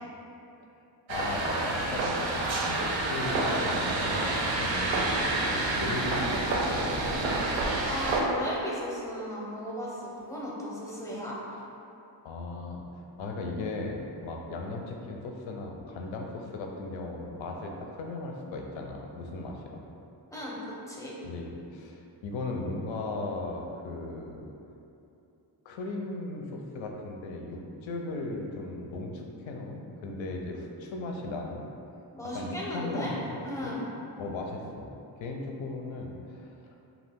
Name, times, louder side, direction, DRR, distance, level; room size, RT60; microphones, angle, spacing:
voice 1, 1.1-7.2 12.2-12.8 13.2-19.8 21.2-24.4 25.6-31.7 32.3-33.7 34.2-34.9 35.2-36.6, left 2 dB, 90° left, 1 dB, 0.5 m, -37 dB
sound 1, 1.1-8.2, right 2 dB, 80° right, 0.5 m, -28 dB
voice 2, 7.8-11.4 20.3-21.1 32.1-33.1 33.4-33.8, equal, 5° left, -5 dB, 0.5 m, -36 dB
2.7 x 2.3 x 3.4 m, 2.8 s
cardioid pair, 100°, 45 cm